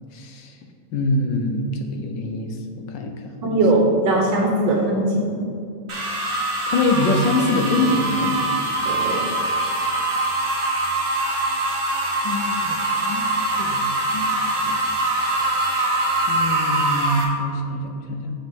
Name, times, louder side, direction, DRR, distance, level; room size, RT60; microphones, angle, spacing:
voice 1, 0.1-0.6 0.9-3.1 3.4-3.6 6.7-8.3 12.2-13.2 13.6-13.8 14.1-14.3 14.6-14.8 15.3-15.8 16.3-18.3, left 2 dB, 70° left, 4 dB, 1.4 m, -24 dB
voice 2, 3.4-5.3 8.9-9.2, right 2 dB, 70° right, -1 dB, 1.6 m, -20 dB
sound 1, 5.9-17.2, right 2 dB, 35° right, 1.2 m, -23 dB
7.8 x 7.3 x 3.7 m, 2.4 s
omnidirectional pair, 2.1 m